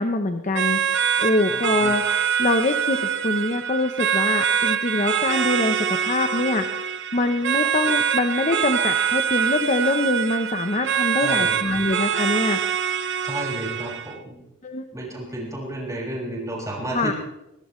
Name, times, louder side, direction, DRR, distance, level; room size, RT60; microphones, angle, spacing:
voice 1, 0.0-2.0 2.4-12.6 14.6-14.8 16.9-17.1, left 2 dB, 35° left, 6 dB, 0.9 m, -24 dB
sound 1, 0.5-14.1, right 8 dB, 55° right, 0.9 m, -24 dB
voice 2, 11.1-11.6 13.2-14.3 14.9-17.1, right 1 dB, 15° right, -5 dB, 6.3 m, -32 dB
22.0 x 19.0 x 3.2 m, 0.90 s
head